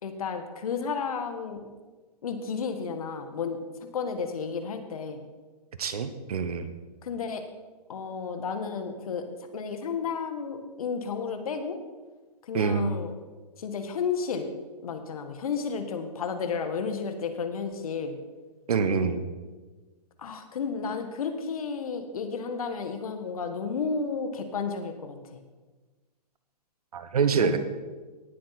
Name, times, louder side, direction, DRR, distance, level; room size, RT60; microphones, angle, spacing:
voice 1, 0.0-1.6 2.2-3.6 3.9-5.2 7.0-7.4 7.9-9.2 9.5-11.8 12.5-13.1 13.6-14.5 14.8-18.1 20.2-25.4 27.3-27.6, left 5 dB, 60° left, 7 dB, 1.6 m, -32 dB
voice 2, 5.8-6.7 12.5-12.9 18.7-19.2 26.9-27.6, right 5 dB, 60° right, 10 dB, 1.3 m, -25 dB
18.5 x 7.7 x 4.2 m, 1.3 s
figure-of-eight pair, 125°, 21 cm